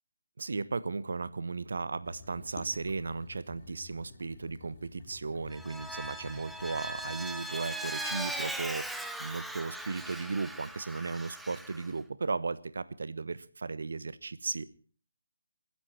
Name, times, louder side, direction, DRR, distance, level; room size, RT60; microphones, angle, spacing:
voice 1, 0.4-14.7, right 4 dB, 60° right, 15 dB, 1.0 m, -36 dB
sound 1, 2.0-7.3, left 4 dB, 30° left, 3.7 m, -51 dB
Vehicle, 5.5-11.9, right 1 dB, ahead, 0.7 m, -39 dB
28.5 x 10.5 x 4.4 m, 0.42 s
figure-of-eight pair, 145°, 0 cm